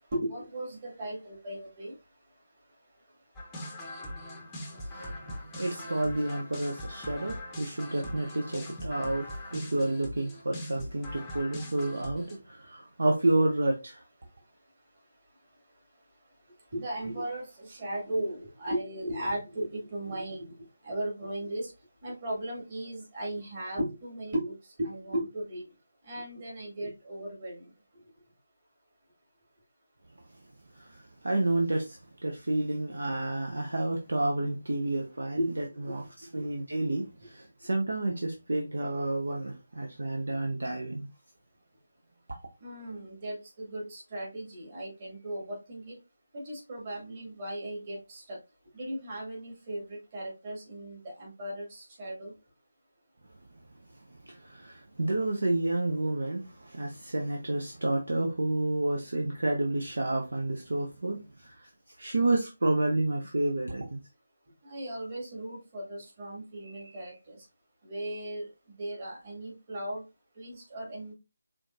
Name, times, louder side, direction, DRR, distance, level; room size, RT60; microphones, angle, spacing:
voice 1, 0.1-2.0 16.7-20.5 20.8-21.7 22.0-25.6 26.0-27.7 35.4-35.5 35.8-36.0 36.4-36.6 42.6-46.0 46.3-48.4 48.7-52.3 64.6-67.4 67.8-68.5 68.8-70.0 70.4-71.1, right 1 dB, 30° right, 2.3 m, -36 dB
sound 1, 3.3-12.4, left 1 dB, 10° left, 0.8 m, -41 dB
voice 2, 4.7-14.0 30.8-36.0 36.3-41.1 54.2-61.7 62.0-64.0, right 2 dB, 60° right, 0.9 m, -30 dB
4.9 x 3.6 x 2.6 m
figure-of-eight pair, 155°, 0 cm